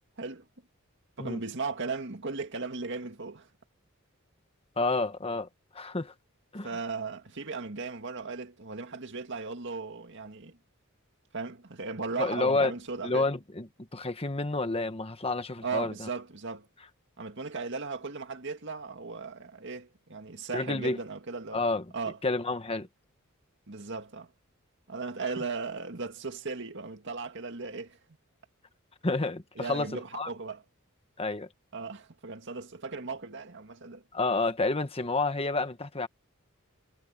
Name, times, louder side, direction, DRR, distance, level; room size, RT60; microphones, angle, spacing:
voice 1, 1.2-3.5 6.6-10.6 11.3-13.3 15.6-16.7 17.2-21.6 21.9-22.2 23.7-24.3 24.9-28.0 29.6-30.6 31.7-34.0, right 4 dB, 60° right, 2.1 m, -37 dB
voice 2, 4.8-5.5 5.7-6.1 6.5-6.7 12.2-12.7 13.0-13.7 13.9-16.1 20.5-21.0 21.5-21.8 22.2-22.9 29.0-30.3 31.2-31.5 34.1-36.1, left 3 dB, 30° left, 1.3 m, -29 dB
head